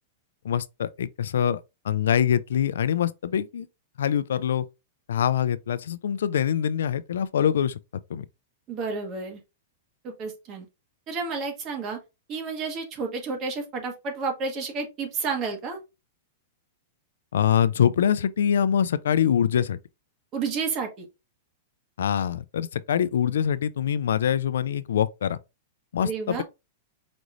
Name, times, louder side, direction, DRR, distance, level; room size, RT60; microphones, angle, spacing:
voice 1, 0.4-1.6 1.8-3.7 4.0-4.7 5.1-7.8 8.1-8.3 17.3-19.8 22.0-25.4 25.9-26.4, left 9 dB, 85° left, 0.4 m, -24 dB
voice 2, 8.7-9.4 10.0-10.7 11.1-12.0 12.3-15.8 20.3-21.1 26.0-26.4, right 4 dB, 30° right, 1.4 m, -31 dB
5.1 x 3.0 x 2.5 m
supercardioid pair, 150°, 0 cm